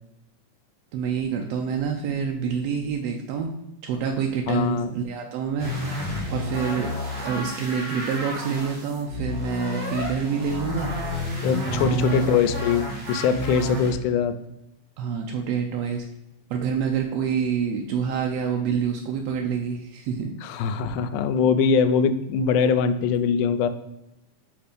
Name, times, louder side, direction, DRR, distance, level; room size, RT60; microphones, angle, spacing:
voice 1, 0.9-3.5 3.8-5.7 6.3-6.9 7.2-10.9 11.7-12.4 15.0-16.0 16.5-20.3, right 6 dB, 80° right, 3 dB, 1.5 m, -27 dB
voice 2, 4.5-4.9 11.4-14.4 20.4-23.7, left 6 dB, 90° left, 11 dB, 2.1 m, -22 dB
sound 1, 5.6-13.9, left 1 dB, 45° right, 0.7 m, -31 dB
5.3 x 4.4 x 5.1 m, 0.86 s
omnidirectional pair, 3.5 m